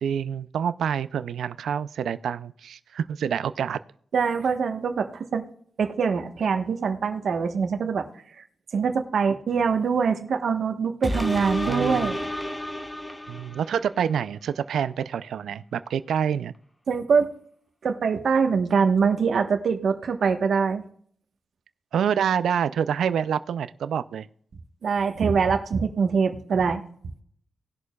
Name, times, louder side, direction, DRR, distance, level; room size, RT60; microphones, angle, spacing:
voice 1, 0.0-3.8 11.6-12.1 13.3-16.5 21.9-24.3, right 8 dB, 90° right, 14 dB, 0.4 m, -27 dB
voice 2, 4.1-5.4 5.8-8.1 8.7-12.2 16.9-17.3 17.8-20.8 24.8-26.8, right 5 dB, 75° right, 6 dB, 1.2 m, -23 dB
sound 1, 11.0-14.0 14.5-14.6, left 1 dB, 15° left, 1.3 m, -31 dB
19.5 x 6.5 x 2.3 m, 0.62 s
cardioid pair, 75°, 0 cm